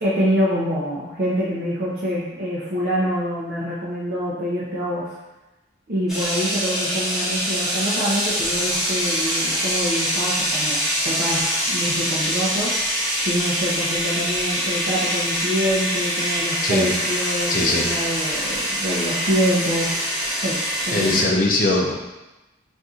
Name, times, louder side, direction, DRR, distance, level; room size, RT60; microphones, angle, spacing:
voice 1, 0.0-5.1 5.9-10.8 11.0-20.0 20.4-20.6 20.8-21.2, equal, 55° right, -7 dB, 0.5 m, -25 dB
sound 1, 6.1-21.2, equal, ahead, 0.9 m, -24 dB
voice 2, 17.5-17.9 20.9-21.9, left 2 dB, 50° left, 0 dB, 0.5 m, -20 dB
4.1 x 2.6 x 2.4 m, 1.0 s
head